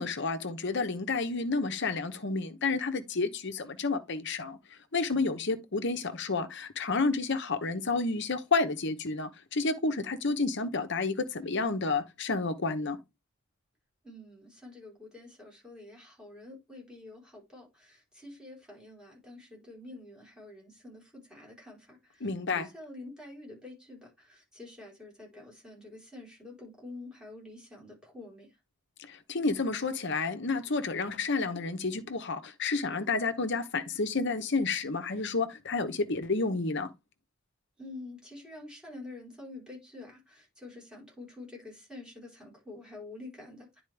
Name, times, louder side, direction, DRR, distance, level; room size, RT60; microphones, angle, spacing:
voice 1, 0.0-4.6 4.9-13.0 22.2-22.7 29.0-36.9, left 3 dB, 55° left, 1.0 m, -30 dB
voice 2, 14.0-22.2 22.7-28.5 37.8-43.8, left 2 dB, 5° right, 4.3 m, -47 dB
10.5 x 4.4 x 3.4 m
head